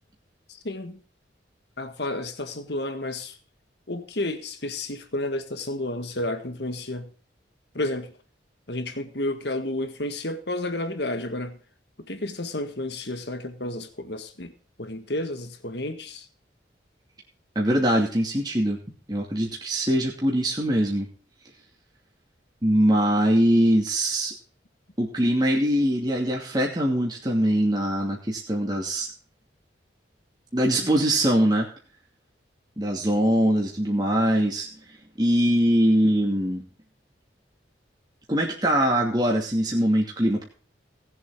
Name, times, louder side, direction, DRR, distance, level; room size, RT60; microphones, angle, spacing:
voice 1, 0.5-1.0 1.8-3.4 3.9-7.1 7.7-8.1 8.7-11.6 12.1-14.5 14.8-16.3, left 1 dB, 60° left, 1.8 m, -31 dB
voice 2, 17.5-18.8 19.1-21.1 22.6-24.3 25.0-29.1 30.5-31.7 32.8-34.7 35.2-36.6 38.3-40.4, equal, 20° right, 2.5 m, -22 dB
19.5 x 7.7 x 3.8 m
head